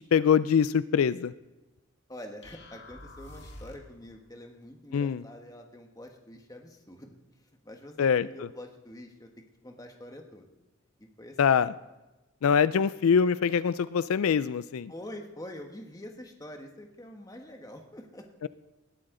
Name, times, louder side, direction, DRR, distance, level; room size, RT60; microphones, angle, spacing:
voice 1, 0.1-1.3 4.9-5.2 8.0-8.3 11.4-11.7 12.4-14.9 18.4-18.5, left 7 dB, 80° left, 16 dB, 0.4 m, -24 dB
voice 2, 2.1-7.2 7.6-9.3 9.6-10.5 11.0-11.4 12.7-12.8 14.9-18.3, left 1 dB, 15° left, 3 dB, 1.4 m, -45 dB
sound 1, 2.4-4.0, left 1 dB, 50° left, 2.0 m, -47 dB
19.5 x 13.0 x 3.8 m, 1.1 s
head